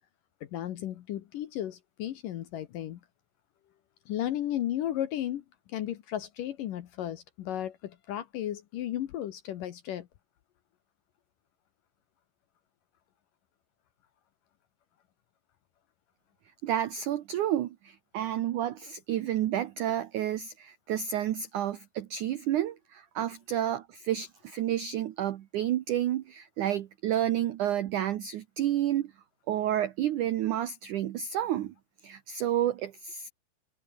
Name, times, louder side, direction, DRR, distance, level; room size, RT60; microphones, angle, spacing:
voice 1, 0.5-3.0 4.1-5.4 5.7-10.1, left 12 dB, 65° left, 2.2 m, -34 dB
voice 2, 16.6-29.1 29.5-31.7 32.0-33.3, right 11 dB, 90° right, 1.7 m, -30 dB
omnidirectional pair, 5.1 m